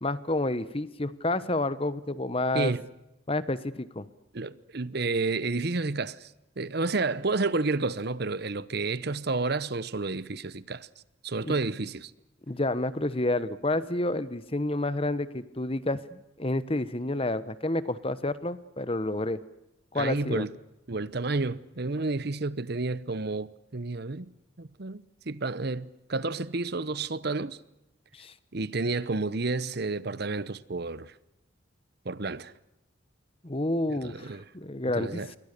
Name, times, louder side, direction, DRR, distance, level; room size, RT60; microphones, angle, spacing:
voice 1, 0.0-2.7 3.3-4.1 11.4-11.5 12.5-19.4 19.9-20.5 28.1-28.3 33.4-35.4, left 2 dB, 30° left, 1.1 m, -29 dB
voice 2, 2.5-2.9 4.3-6.3 6.6-10.9 11.2-12.1 19.9-20.5 20.9-24.3 24.6-27.6 28.5-31.1 32.0-32.5 34.0-34.4 34.9-35.3, right 3 dB, 50° right, 0.9 m, -30 dB
28.0 x 23.0 x 6.8 m
head